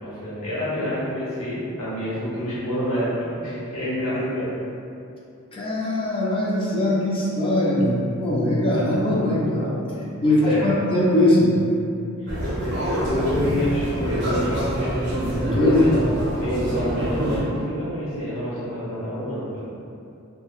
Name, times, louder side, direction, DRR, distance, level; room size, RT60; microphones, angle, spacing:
voice 1, 0.0-4.5 10.2-10.8 12.2-14.7 15.5-16.1 16.3-19.7, equal, 75° left, -9 dB, 1.0 m, -28 dB
voice 2, 5.5-9.8 10.2-11.5 15.3-15.9, left 1 dB, 25° left, -5 dB, 0.4 m, -21 dB
sound 1, 12.3-17.4, equal, 55° right, 0.6 m, -25 dB
3.2 x 2.2 x 2.4 m, 2.6 s
head